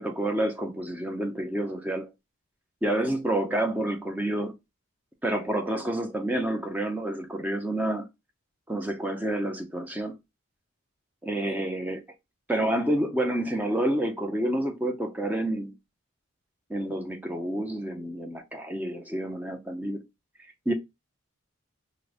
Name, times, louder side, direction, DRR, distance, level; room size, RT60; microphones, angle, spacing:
voice 1, 0.0-2.1 2.8-4.5 5.2-8.1 8.7-10.1 11.2-12.0 12.5-15.7 16.7-20.0 20.7-20.8, right 1 dB, 5° right, 0.5 m, -29 dB
4.7 x 2.0 x 2.4 m
head